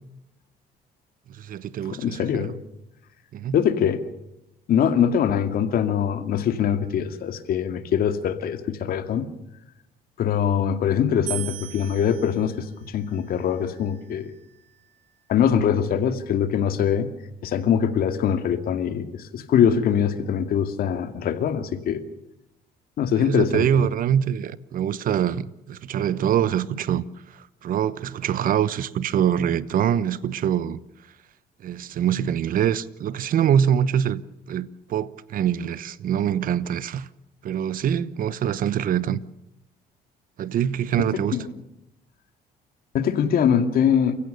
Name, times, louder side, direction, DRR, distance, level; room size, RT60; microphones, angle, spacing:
voice 1, 1.4-2.5 3.3-3.6 23.1-27.0 27.6-30.8 31.6-34.2 34.5-37.1 37.4-39.2 40.4-41.4, right 9 dB, 55° right, 1.0 m, -24 dB
voice 2, 1.9-2.6 3.5-4.0 4.7-9.3 10.2-14.3 15.3-17.1 17.4-19.1 19.3-22.0 23.0-23.9 41.1-41.5 42.9-44.2, left 8 dB, 60° left, 2.3 m, -23 dB
sound 1, 11.3-14.5, right 12 dB, 80° right, 2.6 m, -39 dB
29.0 x 16.0 x 6.7 m
cardioid pair, 110°, 17 cm